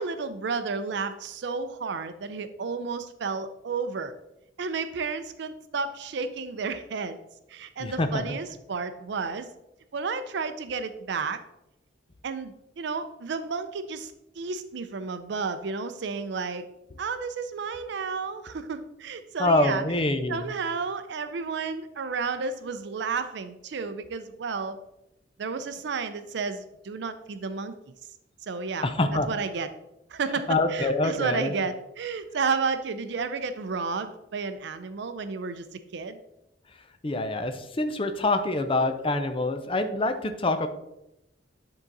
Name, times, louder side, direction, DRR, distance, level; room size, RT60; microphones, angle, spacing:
voice 1, 0.0-4.1 4.6-7.2 7.5-9.5 9.9-11.4 12.2-16.6 17.0-19.8 20.3-24.8 25.4-27.7 28.4-28.9 29.3-29.7 30.1-36.2, right 4 dB, 65° right, 10 dB, 0.5 m, -32 dB
voice 2, 7.8-8.4 19.4-20.5 28.8-29.3 30.5-31.5 37.0-40.7, left 2 dB, 30° left, 8 dB, 0.6 m, -25 dB
9.9 x 3.8 x 4.0 m, 0.89 s
head